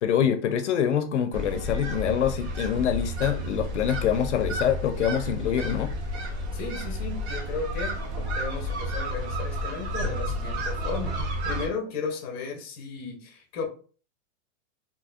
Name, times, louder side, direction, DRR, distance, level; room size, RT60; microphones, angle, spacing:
voice 1, 0.0-5.9, left 9 dB, 65° left, 10 dB, 0.5 m, -25 dB
sound 1, 1.3-11.7, equal, 60° right, 1.0 m, -31 dB
voice 2, 6.5-13.7, left 5 dB, 20° left, 1 dB, 0.7 m, -35 dB
4.2 x 2.8 x 2.3 m, 0.39 s
supercardioid pair, 180°, 38 cm